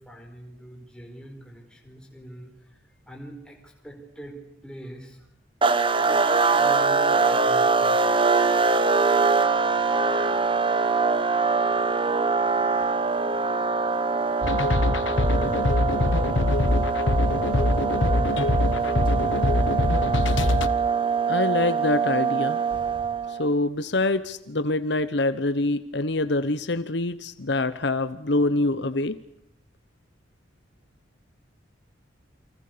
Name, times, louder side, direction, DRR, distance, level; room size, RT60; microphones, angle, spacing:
voice 1, 0.0-2.8 3.1-4.4 4.6-5.3 6.0-8.0 12.3-13.3 15.9-16.0, right 1 dB, 5° left, 1 dB, 5.2 m, -44 dB
sound 1, 5.6-23.5, right 4 dB, 25° right, 1.2 m, -23 dB
sound 2, 14.4-20.7, left 2 dB, 75° left, 1.3 m, -23 dB
voice 2, 21.3-22.6 23.3-29.2, left 2 dB, 60° left, 13 dB, 1.0 m, -25 dB
29.5 x 25.0 x 6.8 m, 0.72 s
head